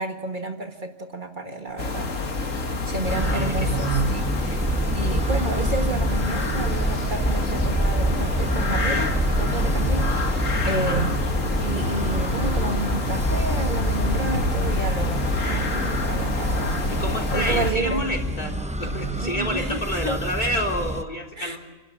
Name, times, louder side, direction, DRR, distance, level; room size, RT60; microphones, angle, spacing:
voice 1, 0.0-2.1 2.9-11.2 11.6-16.8 17.3-18.0 19.2-20.2 21.4-21.6, right 3 dB, 40° right, 4 dB, 1.9 m, -31 dB
sound 1, 1.7-18.8, left 1 dB, 65° right, 2.2 m, -46 dB
sound 2, 1.8-17.7, left 3 dB, 80° left, 2.2 m, -27 dB
sound 3, 3.0-21.0, right 1 dB, 5° right, 0.6 m, -27 dB
voice 2, 3.2-4.2 10.6-11.1 16.9-21.6, equal, 35° left, 2 dB, 3.6 m, -28 dB
28.0 x 12.0 x 8.6 m, 1.3 s
omnidirectional pair, 1.3 m